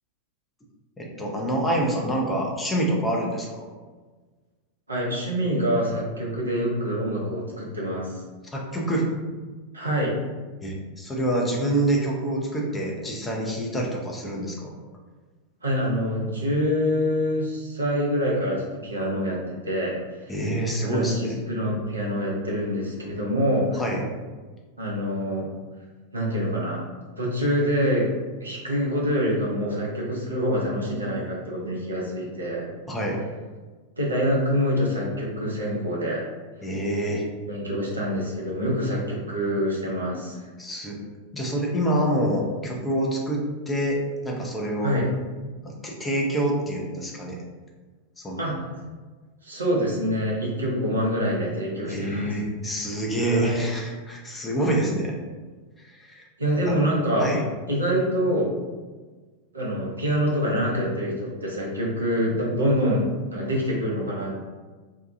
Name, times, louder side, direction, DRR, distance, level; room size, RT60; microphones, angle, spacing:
voice 1, 1.0-3.6 8.5-9.1 10.6-14.7 20.3-21.4 23.7-24.0 32.9-33.2 36.6-37.3 40.6-41.0 41.3-45.0 45.6-47.4 48.2-48.6 51.9-55.2 55.8-56.3 56.7-56.8 57.2-57.4, right 1 dB, 10° left, -2 dB, 0.6 m, -26 dB
voice 2, 4.9-8.1 9.7-10.1 15.6-19.4 19.6-19.9 20.8-23.8 24.8-25.4 26.1-26.8 27.2-28.1 28.4-32.7 34.0-36.2 37.5-40.4 44.8-45.0 48.4-48.5 49.4-52.4 53.3-53.6 56.4-57.3 57.7-58.5 59.5-64.4, equal, 80° right, -4 dB, 0.7 m, -25 dB
2.7 x 2.3 x 2.5 m, 1.3 s
figure-of-eight pair, 90°, 0 cm